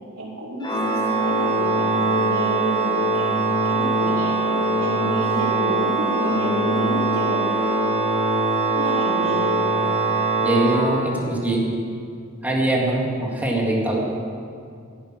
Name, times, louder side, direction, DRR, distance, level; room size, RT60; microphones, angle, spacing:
voice 1, 0.1-3.3 3.6-7.7 8.7-9.6, right 1 dB, 80° right, -4 dB, 3.8 m, -30 dB
Organ, 0.6-11.5, right 2 dB, 20° left, 1.3 m, -22 dB
voice 2, 10.4-11.7 12.4-14.1, right 2 dB, 10° right, -2 dB, 2.3 m, -22 dB
15.0 x 10.5 x 6.1 m, 2.3 s
head